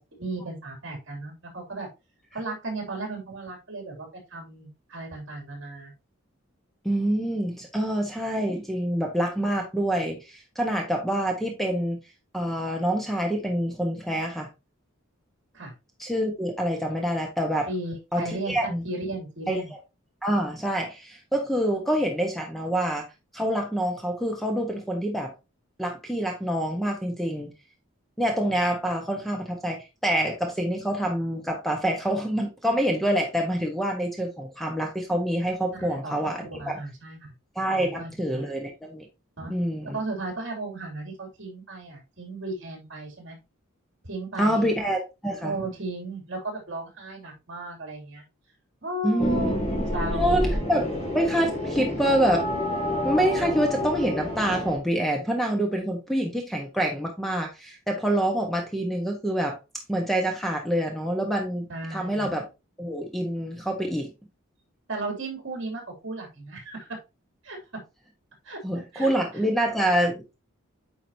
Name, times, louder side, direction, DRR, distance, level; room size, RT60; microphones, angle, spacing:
voice 1, 0.1-1.9 2.3-5.9 15.5-15.7 17.7-19.7 35.8-37.3 37.7-38.5 39.4-39.5 39.8-43.4 44.0-44.7 45.4-48.2 48.8-49.6 49.9-50.4 61.7-62.4 64.9-67.0 67.4-67.6 68.4-68.6 68.9-69.4, right 2 dB, 60° right, 2.9 m, -35 dB
voice 2, 6.8-12.0 12.3-14.5 16.0-17.7 18.1-18.8 19.5-19.6 20.2-23.0 23.3-25.3 25.8-27.5 28.2-36.4 36.7-36.8 37.5-39.0 39.5-40.0 44.4-45.5 49.0-49.8 50.1-50.9 51.1-52.5 53.0-59.5 59.9-61.7 61.9-62.4 62.8-64.1 68.6-70.3, right 1 dB, ahead, 1.2 m, -26 dB
sound 1, 49.2-54.8, left 1 dB, 30° left, 2.3 m, -28 dB
9.1 x 4.9 x 2.8 m
head